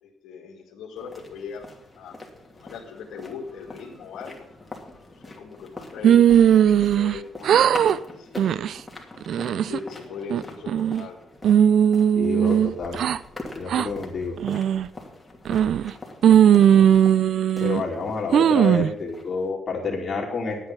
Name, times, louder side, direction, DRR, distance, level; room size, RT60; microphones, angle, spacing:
voice 1, 0.0-1.7 2.0-2.2 2.5-4.4 5.1-6.4 6.8-7.6 8.0-8.6 9.3-11.2, left 6 dB, 80° left, -4 dB, 2.2 m, -39 dB
sound 1, 1.0-19.5, left 2 dB, 15° left, 2.7 m, -43 dB
sound 2, 6.0-7.2 7.4-8.0 8.4-8.7 9.2-9.8 10.3-11.0 11.4-13.2 13.7-13.9 14.4-14.9 15.4-15.9 16.2-17.8 18.3-18.9, right 9 dB, 65° right, 0.4 m, -18 dB
voice 2, 12.2-13.0 13.5-14.4 17.6-20.6, left 4 dB, 40° left, -5 dB, 2.8 m, -29 dB
12.0 x 9.1 x 5.7 m, 0.84 s
cardioid pair, 90°, 0 cm